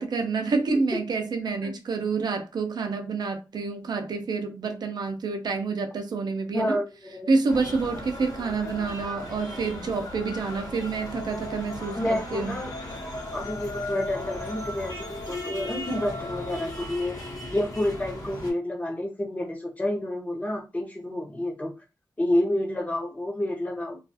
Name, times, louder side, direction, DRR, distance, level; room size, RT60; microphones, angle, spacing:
voice 1, 0.0-6.8 7.3-12.6, right 4 dB, 70° right, 0.4 m, -28 dB
voice 2, 1.4-1.8 6.5-7.3 11.9-12.7 13.3-17.1 17.5-21.7 22.2-24.0, left 1 dB, 20° left, 0.7 m, -29 dB
sound 1, 7.5-18.5, left 1 dB, 55° left, 0.9 m, -36 dB
2.3 x 2.3 x 2.6 m
wide cardioid pair, 170°, 7 cm